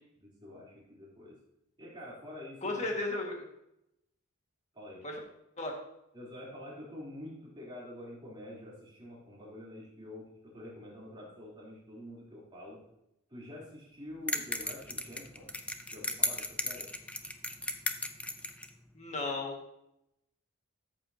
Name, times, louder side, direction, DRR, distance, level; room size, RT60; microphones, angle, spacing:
voice 1, 0.2-1.3 1.8-2.7 4.7-5.0 6.1-12.8 13.3-15.5 15.9-16.9, left 1 dB, 20° right, -6 dB, 3.4 m, -47 dB
voice 2, 2.6-3.4 5.0-5.2 5.6-5.7 19.0-19.5, left 2 dB, 35° left, 1 dB, 1.8 m, -34 dB
sound 1, 14.3-18.7, left 2 dB, 5° left, 0.5 m, -35 dB
13.5 x 7.3 x 2.8 m, 0.81 s
head